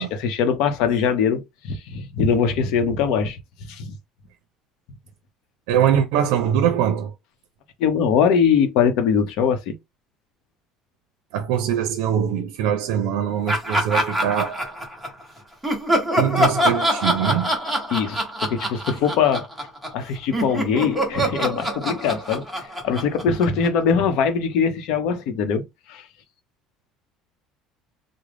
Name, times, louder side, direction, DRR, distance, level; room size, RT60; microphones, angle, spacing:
voice 1, 0.0-3.4 3.7-3.9 7.8-9.7 17.9-19.5 19.9-22.4 22.8-26.0, left 6 dB, 60° left, 0.7 m, -22 dB
voice 2, 5.7-7.1 11.3-14.7 16.2-17.5, right 9 dB, 90° right, 0.5 m, -22 dB
Laughter, 13.5-15.2 15.6-20.0 20.3-23.9, equal, 5° right, 0.8 m, -24 dB
3.7 x 2.0 x 3.3 m
cardioid pair, 180°, 0 cm